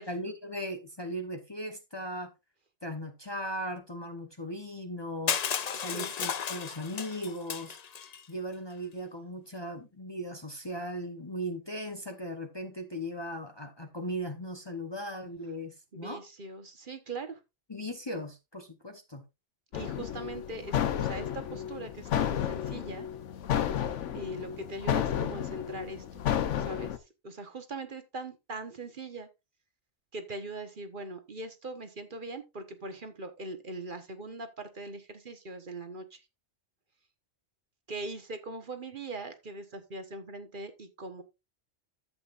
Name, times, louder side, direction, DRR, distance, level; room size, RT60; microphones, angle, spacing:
voice 1, 0.0-2.3 2.8-5.4 5.7-7.8 8.3-16.2 17.7-19.2, equal, 25° left, 0.9 m, -38 dB
Crushing, 5.3-8.2, left 7 dB, 50° left, 0.5 m, -34 dB
voice 2, 5.7-6.1 15.9-17.4 19.7-23.1 24.1-26.3 26.6-29.3 30.1-36.2 37.9-41.2, right 2 dB, 45° right, 1.2 m, -41 dB
sound 1, 19.7-27.0, left 10 dB, 85° left, 1.1 m, -32 dB
11.5 x 7.8 x 2.5 m
omnidirectional pair, 1.2 m